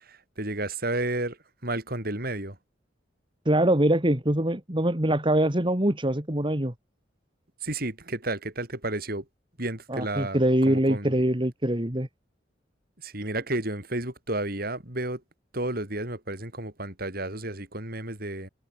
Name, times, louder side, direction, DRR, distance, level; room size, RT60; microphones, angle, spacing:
voice 1, 0.1-1.4 1.6-2.6 7.6-9.2 9.6-10.4 10.7-11.2 13.0-15.2 15.5-18.5, right 2 dB, 55° right, 7.2 m, -31 dB
voice 2, 3.5-6.7 9.9-12.1, right 1 dB, 30° right, 2.5 m, -23 dB
head